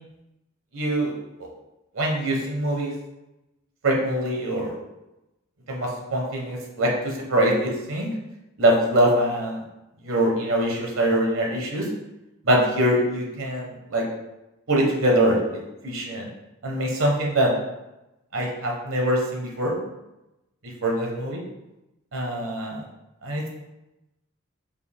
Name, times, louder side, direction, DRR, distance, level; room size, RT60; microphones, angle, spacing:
voice 1, 0.7-1.1 1.4-1.5 1.9-2.9 3.8-4.7 5.7-8.1 8.6-9.6 10.0-11.9 12.4-14.0 14.7-16.3 16.6-17.5 18.3-19.8 20.8-21.4 22.1-22.8 23.2-23.5, right 1 dB, 75° right, -1 dB, 1.0 m, -23 dB
4.7 x 2.7 x 3.4 m, 0.96 s
head